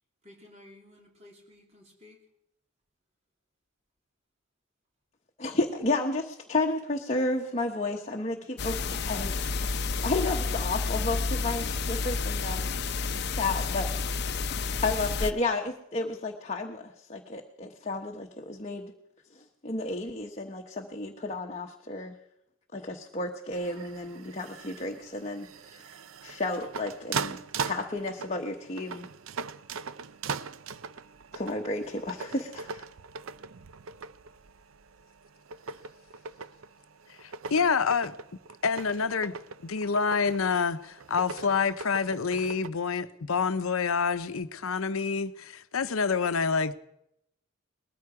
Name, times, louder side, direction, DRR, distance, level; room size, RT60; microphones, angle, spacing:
voice 1, 0.2-2.2, equal, 30° right, 3.0 m, -55 dB
voice 2, 5.4-9.3 10.0-12.6 13.3-13.9 14.8-18.9 19.3-22.1 22.7-25.9 26.2-29.1 31.3-32.8, left 2 dB, 30° left, 1.0 m, -32 dB
sound 1, 8.6-15.3, left 4 dB, 55° left, 0.7 m, -30 dB
sound 2, 23.5-42.7, right 5 dB, 80° right, 0.5 m, -40 dB
voice 3, 37.2-38.2 38.6-39.3 39.6-46.7, left 5 dB, 85° left, 0.8 m, -27 dB
20.0 x 14.0 x 4.9 m
head